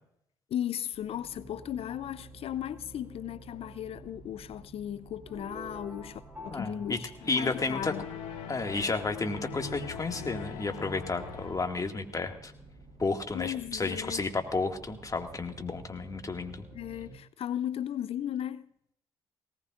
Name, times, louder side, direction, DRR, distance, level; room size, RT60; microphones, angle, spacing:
voice 1, 0.5-8.1 13.3-14.2 16.7-18.7, left 10 dB, 60° left, 0.5 m, -36 dB
sound 1, 0.9-17.1, right 2 dB, 55° right, 6.4 m, -52 dB
sound 2, 5.3-8.3, equal, 15° right, 3.2 m, -48 dB
voice 2, 6.5-7.9 8.5-12.5 13.0-16.6, left 3 dB, 30° left, 2.2 m, -32 dB
sound 3, 7.2-11.8, left 6 dB, 80° left, 2.1 m, -41 dB
19.0 x 18.0 x 2.6 m
hypercardioid pair, 45°, 11 cm